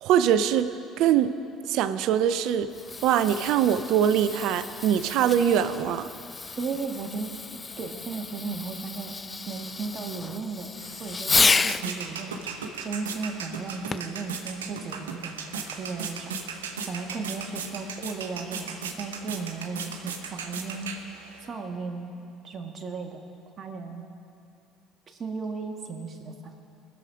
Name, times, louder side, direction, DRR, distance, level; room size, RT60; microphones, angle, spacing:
voice 1, 0.0-1.4 1.7-2.7 3.0-6.1, right 9 dB, 65° right, 13 dB, 0.5 m, -23 dB
Fireworks, 2.6-11.9 13.9-14.2 14.9-15.0, left 4 dB, 25° left, 0.3 m, -31 dB
voice 2, 6.6-9.1 9.5-10.7 11.0-16.3 16.9-21.0 21.5-22.1 22.4-23.3 23.6-24.1 25.1-26.6, right 4 dB, 40° right, 2 dB, 1.8 m, -35 dB
sound 1, 10.8-21.5, right 5 dB, 85° right, 0.9 m, -37 dB
21.0 x 7.2 x 5.0 m, 2.7 s
hypercardioid pair, 65°, 0 cm